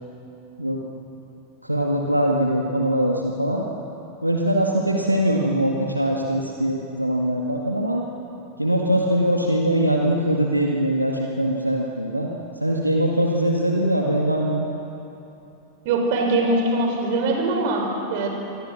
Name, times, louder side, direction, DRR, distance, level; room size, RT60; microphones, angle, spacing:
voice 1, 1.6-3.6 4.2-8.0 8.6-12.3 12.6-14.7, right 1 dB, 90° right, 0 dB, 1.9 m, -22 dB
voice 2, 15.8-18.3, right 2 dB, 50° right, 2 dB, 5.7 m, -22 dB
26.5 x 24.0 x 6.5 m, 2.9 s
figure-of-eight pair, 90°, 0 cm